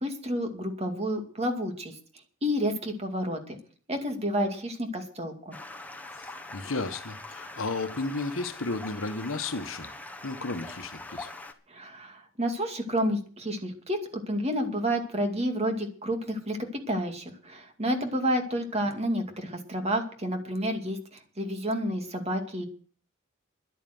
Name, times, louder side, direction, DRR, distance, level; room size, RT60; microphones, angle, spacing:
voice 1, 0.0-1.9 2.4-3.6 3.9-5.6 11.7-22.7, equal, 30° right, 2.3 m, -30 dB
Stream, 5.5-11.5, left 2 dB, 10° left, 1.3 m, -43 dB
voice 2, 6.2-9.9 10.2-11.3, left 3 dB, 75° left, 1.4 m, -33 dB
11.5 x 9.1 x 7.9 m
head